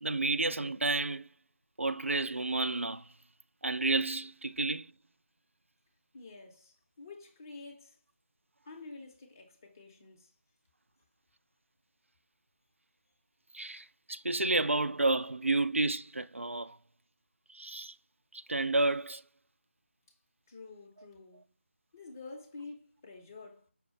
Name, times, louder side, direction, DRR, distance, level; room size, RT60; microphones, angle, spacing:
voice 1, 0.0-1.3 1.8-3.0 3.6-4.9 13.5-16.8 17.5-17.9 18.3-19.2, right 2 dB, 75° right, 0.3 m, -30 dB
voice 2, 6.1-8.0 8.7-10.3 20.5-21.4 21.9-23.7, left 3 dB, 15° left, 0.6 m, -49 dB
5.5 x 2.3 x 3.1 m
figure-of-eight pair, 160°, 7 cm